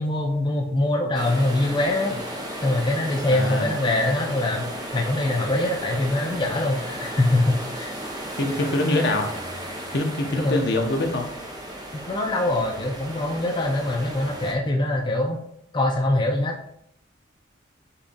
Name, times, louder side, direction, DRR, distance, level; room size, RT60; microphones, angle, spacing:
voice 1, 0.0-2.3 2.6-4.7 4.9-7.9 10.4-10.7 11.9-15.4 15.7-16.7, left 1 dB, 25° left, 0 dB, 0.4 m, -23 dB
sound 1, 1.1-14.5, right 1 dB, 20° right, 0.6 m, -34 dB
voice 2, 3.3-3.7 8.4-9.3 9.9-11.3, left 2 dB, 60° left, 3 dB, 0.7 m, -24 dB
6.8 x 2.6 x 2.6 m, 0.72 s
head